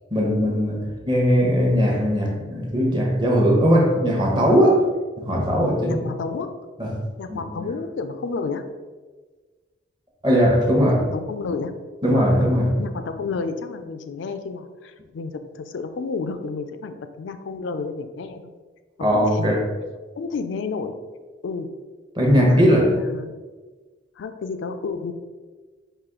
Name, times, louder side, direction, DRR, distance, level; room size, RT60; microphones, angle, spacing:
voice 1, 0.1-4.8 5.2-6.0 6.8-7.0 7.3-7.7 10.2-11.0 12.0-12.8 19.0-19.6 22.1-23.0, equal, 25° right, -1 dB, 0.8 m, -19 dB
voice 2, 5.9-6.6 7.2-8.7 11.0-11.8 12.1-12.3 12.8-18.5 19.0-19.7 20.2-20.9 21.4-21.7 22.4-23.3 24.2-25.1, left 4 dB, 75° left, 9 dB, 0.3 m, -31 dB
4.9 x 2.5 x 3.7 m, 1.3 s
head